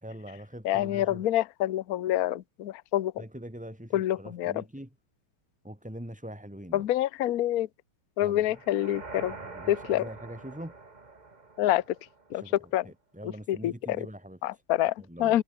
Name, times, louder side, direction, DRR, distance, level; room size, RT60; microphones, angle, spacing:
voice 1, 0.0-1.2 3.2-4.9 5.6-6.8 8.2-8.4 9.4-10.8 12.3-12.5 12.8-14.6 15.0-15.4, equal, 5° right, 3.3 m, -43 dB
voice 2, 0.6-3.2 3.9-4.6 6.7-7.7 8.2-9.3 9.7-10.0 11.6-11.8 12.3-12.9 13.5-14.1 14.4-14.9 15.2-15.4, left 13 dB, 60° left, 1.0 m, -27 dB
sound 1, 8.5-12.6, right 3 dB, 20° right, 1.6 m, -45 dB
omnidirectional pair, 2.3 m